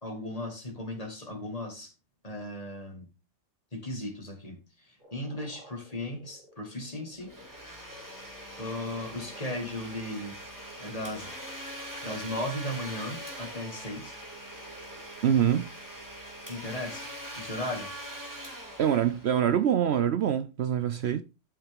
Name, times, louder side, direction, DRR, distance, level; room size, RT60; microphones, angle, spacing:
voice 1, 0.0-1.9 2.2-3.1 3.7-7.3 8.6-10.4 10.8-11.3 12.0-14.2 16.5-17.1 17.3-17.9, left 1 dB, 30° left, 2.2 m, -36 dB
sound 1, 5.0-15.1, right 2 dB, 80° right, 3.3 m, -55 dB
Domestic sounds home sounds, 7.2-19.8, equal, 15° right, 2.5 m, -42 dB
voice 2, 15.2-15.7 18.8-21.2, right 9 dB, 65° right, 0.8 m, -25 dB
12.0 x 6.2 x 3.6 m
omnidirectional pair, 1.3 m